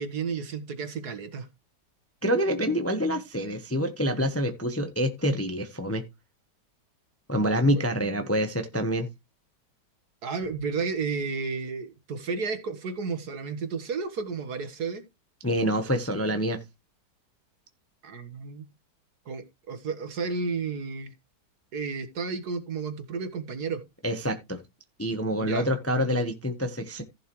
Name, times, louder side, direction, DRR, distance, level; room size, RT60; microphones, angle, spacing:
voice 1, 0.0-1.5 7.7-7.9 10.2-15.0 18.0-18.6 19.3-21.1 21.7-23.8 25.4-25.7, right 4 dB, 65° right, 2.0 m, -32 dB
voice 2, 2.2-6.0 7.3-9.1 15.4-16.6 24.0-24.6 25.0-27.0, equal, 10° left, 0.8 m, -26 dB
15.0 x 6.4 x 3.1 m
omnidirectional pair, 1.8 m